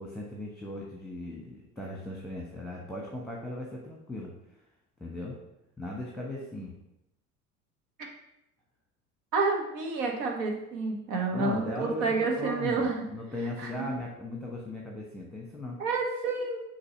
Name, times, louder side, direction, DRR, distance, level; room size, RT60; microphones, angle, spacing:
voice 1, 0.0-4.3 5.0-5.4 5.8-6.7 11.3-15.8, left 1 dB, ahead, -2 dB, 1.2 m, -38 dB
voice 2, 9.3-13.0 13.6-13.9 15.8-16.6, right 3 dB, 65° right, 1 dB, 1.5 m, -29 dB
6.7 x 2.8 x 5.4 m, 0.85 s
hypercardioid pair, 70°, 44 cm